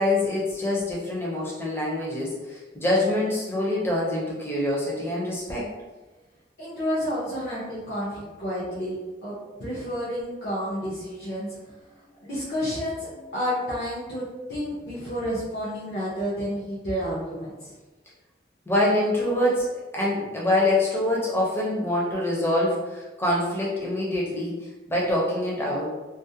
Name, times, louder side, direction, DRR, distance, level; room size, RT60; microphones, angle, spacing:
voice 1, 0.0-5.7 18.7-19.7 19.9-26.0, left 1 dB, 10° left, -4 dB, 0.5 m, -25 dB
voice 2, 6.6-9.0 9.2-11.5 12.2-17.7, equal, 55° left, -9 dB, 0.6 m, -30 dB
2.4 x 2.0 x 2.7 m, 1.2 s
head